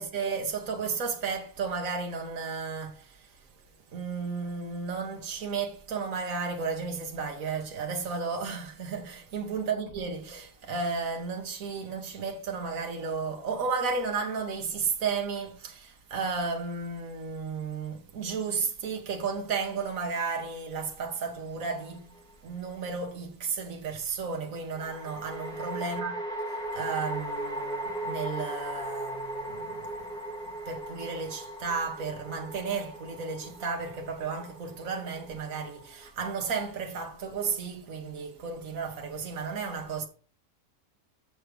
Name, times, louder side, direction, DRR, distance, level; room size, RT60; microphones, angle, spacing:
voice 1, 0.0-3.3 3.9-22.1 22.4-26.2 26.7-30.2 30.7-40.1, right 5 dB, 55° right, 1.8 m, -33 dB
sound 1, 21.6-22.3 24.7-36.1, right 1 dB, 5° left, 1.9 m, -38 dB
7.0 x 5.6 x 5.2 m
omnidirectional pair, 1.7 m